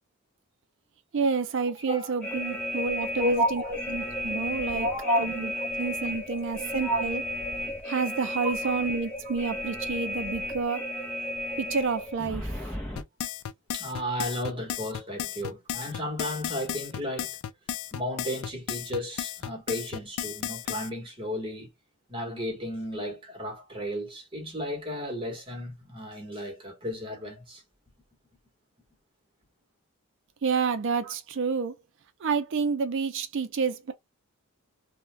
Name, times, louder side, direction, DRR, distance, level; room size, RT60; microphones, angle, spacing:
voice 1, 1.1-3.6 3.9-4.9 5.2-5.5 5.8-7.2 7.9-10.9 11.6-12.6 30.4-31.8 32.2-33.9, right 5 dB, 60° right, 0.4 m, -29 dB
sound 1, 2.2-13.0, left 1 dB, 5° left, 0.7 m, -34 dB
voice 2, 3.2-3.8 4.7-5.3 5.6-5.7 6.5-7.1 8.4-8.7 9.2-9.3 13.7-17.3 17.9-21.7 22.1-27.6 31.0-31.1, equal, 25° right, 1.1 m, -32 dB
sound 2, 13.0-20.9, left 10 dB, 75° left, 0.3 m, -34 dB
2.3 x 2.2 x 3.2 m
head